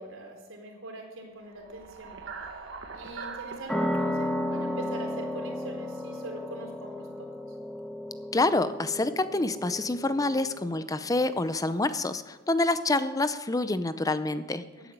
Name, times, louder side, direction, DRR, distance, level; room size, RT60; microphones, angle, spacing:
voice 1, 0.0-2.2 2.5-2.6 2.9-7.3 14.8-14.9, right 1 dB, 85° right, 1 dB, 4.0 m, -43 dB
sound 1, 1.5-5.8, right 5 dB, 65° right, 1.8 m, -43 dB
sound 2, 3.7-10.9, left 1 dB, ahead, 1.3 m, -34 dB
voice 2, 8.3-14.6, left 2 dB, 15° left, 13 dB, 0.5 m, -27 dB
14.5 x 9.2 x 9.4 m, 1.3 s
head